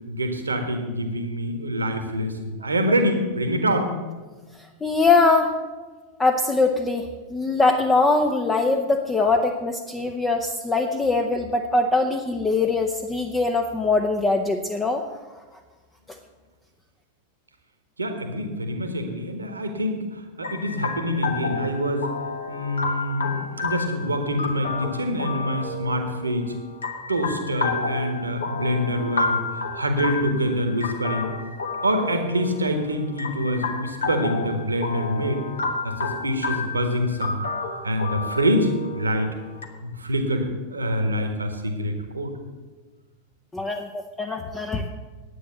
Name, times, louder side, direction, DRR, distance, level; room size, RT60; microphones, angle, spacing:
voice 1, 0.1-3.9 18.0-22.1 22.5-26.5 27.1-31.3 31.8-35.4 35.8-37.4 37.8-39.4 39.8-42.3, equal, 80° right, 6 dB, 1.5 m, -25 dB
voice 2, 4.8-5.5 6.2-15.0 43.5-44.9, left 3 dB, 15° left, 3 dB, 0.8 m, -22 dB
sound 1, 20.4-39.6, left 3 dB, 70° left, 1.3 m, -31 dB
10.5 x 8.9 x 7.1 m, 1.3 s
figure-of-eight pair, 90°, 0 cm